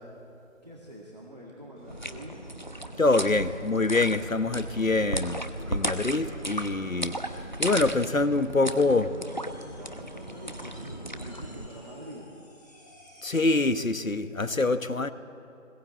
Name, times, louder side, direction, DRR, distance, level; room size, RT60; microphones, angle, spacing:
voice 1, 0.6-2.5 8.4-12.3, equal, 30° right, -4 dB, 2.0 m, -45 dB
sound 1, 1.8-12.2, right 1 dB, 65° right, 7.7 m, -50 dB
sound 2, 1.9-11.7, right 1 dB, 35° left, 0.9 m, -35 dB
voice 2, 3.0-7.2 7.6-9.1 13.2-15.1, left 3 dB, 75° left, 12 dB, 1.3 m, -25 dB
sound 3, 9.1-13.8, left 1 dB, 15° left, 4.3 m, -55 dB
20.5 x 20.5 x 8.6 m, 2.8 s
figure-of-eight pair, 175°, 40 cm